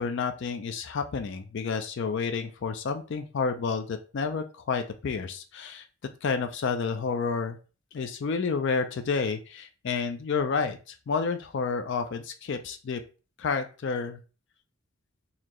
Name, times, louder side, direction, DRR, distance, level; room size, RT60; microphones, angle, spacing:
voice 1, 0.0-5.9 6.2-7.6 7.9-13.0 13.4-14.2, left 5 dB, 55° left, 7 dB, 0.4 m, -30 dB
4.1 x 2.8 x 3.0 m, 0.35 s
head